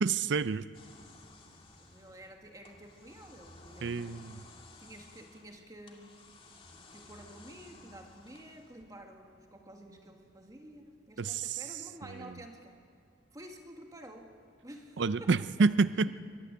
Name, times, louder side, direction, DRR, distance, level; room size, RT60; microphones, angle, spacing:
voice 1, 0.0-0.7 3.8-4.4 11.2-11.6 15.0-16.2, right 4 dB, 65° right, 15 dB, 0.5 m, -28 dB
sound 1, 0.7-9.0, left 2 dB, 30° left, 2.3 m, -55 dB
voice 2, 1.5-4.3 4.8-6.3 6.9-12.8 13.3-14.3 14.6-15.7 16.0-16.2, right 1 dB, 20° right, 3 dB, 1.7 m, -51 dB
23.5 x 16.5 x 9.5 m, 2.4 s
head